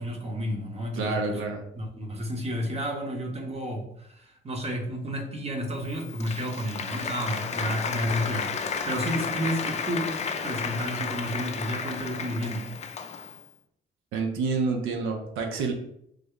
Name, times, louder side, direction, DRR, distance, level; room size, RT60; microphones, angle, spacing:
voice 1, 0.0-1.4 1.8-12.7, equal, 30° right, 1 dB, 0.8 m, -31 dB
voice 2, 0.9-1.6 14.1-15.7, right 4 dB, 85° right, 3 dB, 0.6 m, -28 dB
Applause, 5.8-13.4, left 5 dB, 35° left, 0.4 m, -33 dB
3.3 x 2.1 x 3.7 m, 0.73 s
cardioid pair, 90°, 20 cm